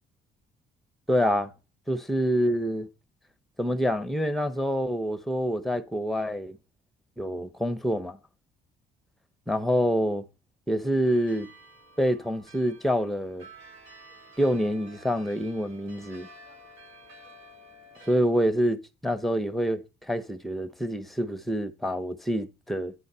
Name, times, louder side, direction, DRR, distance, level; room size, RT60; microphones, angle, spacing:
voice 1, 1.1-1.5 1.9-2.9 3.6-6.6 7.2-8.2 9.5-10.3 10.7-11.5 12.0-13.5 14.4-16.3 18.1-22.9, equal, ahead, 0.9 m, -26 dB
sound 1, 11.0-18.2, right 1 dB, 80° right, 2.5 m, -51 dB
9.7 x 4.0 x 5.4 m
cardioid pair, 90°, 20 cm